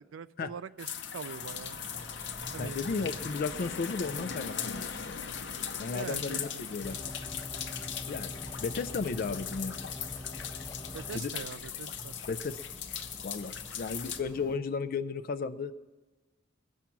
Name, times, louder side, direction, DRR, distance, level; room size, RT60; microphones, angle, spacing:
voice 1, 0.0-1.8 2.5-3.2 5.9-6.6 10.9-12.2, right 6 dB, 80° right, 17 dB, 0.4 m, -43 dB
sound 1, 0.8-14.2, left 8 dB, 65° left, 0.8 m, -39 dB
sound 2, 1.4-14.6, equal, 5° right, 1.0 m, -50 dB
voice 2, 2.6-5.2 5.8-7.0 8.1-9.9 11.1-11.3 12.3-12.6 13.2-15.7, left 4 dB, 50° left, 10 dB, 0.4 m, -34 dB
sound 3, 6.8-11.2, left 1 dB, 15° left, 1.0 m, -44 dB
21.0 x 7.3 x 5.9 m, 1.2 s
head